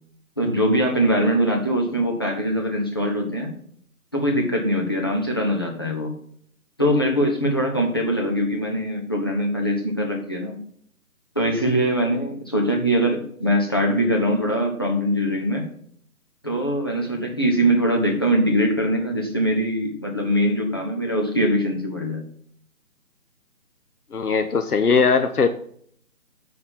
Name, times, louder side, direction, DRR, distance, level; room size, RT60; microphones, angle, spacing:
voice 1, 0.4-3.5 4.1-6.1 6.8-10.6 11.3-15.7 16.4-22.2, equal, 15° left, 0 dB, 0.7 m, -22 dB
voice 2, 24.1-25.5, left 5 dB, 85° left, 8 dB, 0.9 m, -19 dB
8.9 x 4.3 x 7.2 m, 0.62 s
figure-of-eight pair, 160°, 44 cm